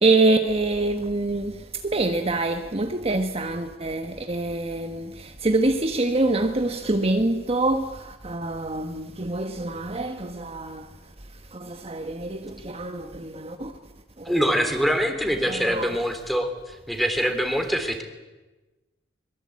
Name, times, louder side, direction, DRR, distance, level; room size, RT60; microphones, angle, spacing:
voice 1, 0.0-10.9 11.5-13.7 14.2-14.5 15.5-16.0, right 2 dB, 35° right, 1.4 m, -25 dB
voice 2, 14.2-18.0, equal, ahead, 3.4 m, -24 dB
24.5 x 22.5 x 8.7 m
head